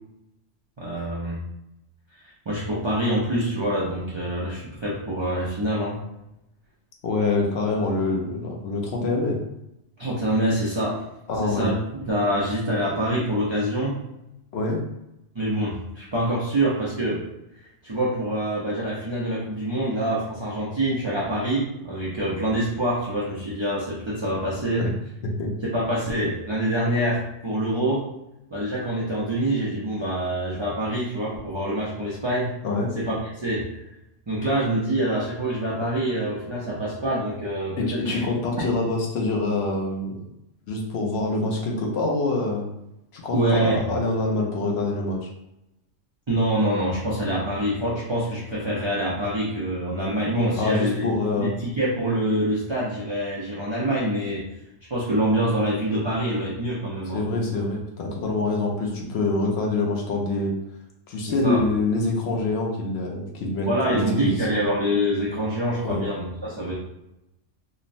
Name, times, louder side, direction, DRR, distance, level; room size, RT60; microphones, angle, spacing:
voice 1, 0.8-1.4 2.5-6.0 10.0-11.0 11.4-11.7 12.0-14.0 15.3-17.2 17.8-24.9 25.7-28.0 28.5-32.5 33.0-33.2 33.4-33.6 34.3-38.2 43.3-43.8 46.3-51.0 51.3-54.4 54.9-57.2 61.4-61.6 63.7-66.7, right 1 dB, 50° right, -6 dB, 0.3 m, -25 dB
voice 2, 7.0-9.4 11.3-11.7 14.5-14.8 24.7-24.9 25.2-25.5 32.6-32.9 37.8-40.2 40.7-42.7 43.1-45.3 50.5-51.5 57.1-60.5 61.1-64.6 65.8-66.0, left 2 dB, 65° left, 0 dB, 0.8 m, -25 dB
3.0 x 2.0 x 2.5 m, 0.86 s
omnidirectional pair, 1.2 m